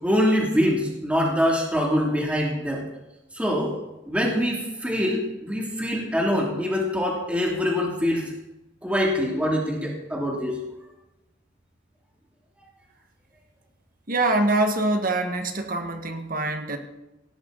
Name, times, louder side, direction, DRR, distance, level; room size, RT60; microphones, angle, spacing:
voice 1, 0.0-2.8 3.3-3.7 4.1-8.2 8.8-10.6, equal, 5° right, -2 dB, 2.9 m, -24 dB
voice 2, 14.1-16.8, right 2 dB, 45° right, 6 dB, 1.8 m, -24 dB
17.5 x 15.5 x 4.1 m, 0.98 s
head